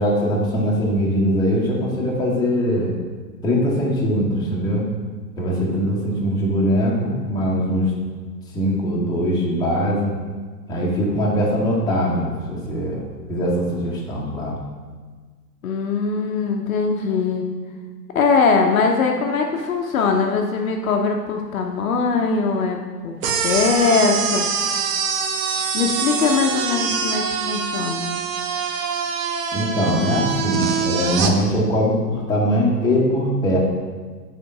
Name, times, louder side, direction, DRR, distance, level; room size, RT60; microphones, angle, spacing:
voice 1, 0.0-2.9 3.4-4.8 5.4-7.9 8.5-10.2 10.7-13.0 13.3-14.6 29.5-33.6, equal, 10° left, -5 dB, 1.1 m, -21 dB
voice 2, 15.6-17.5 18.1-23.2 23.4-24.5 25.7-28.1, left 4 dB, 55° left, 2 dB, 0.8 m, -21 dB
sound 1, 23.2-31.3, right 6 dB, 50° right, 0.8 m, -24 dB
5.2 x 4.5 x 5.4 m, 1.4 s
figure-of-eight pair, 115°, 50 cm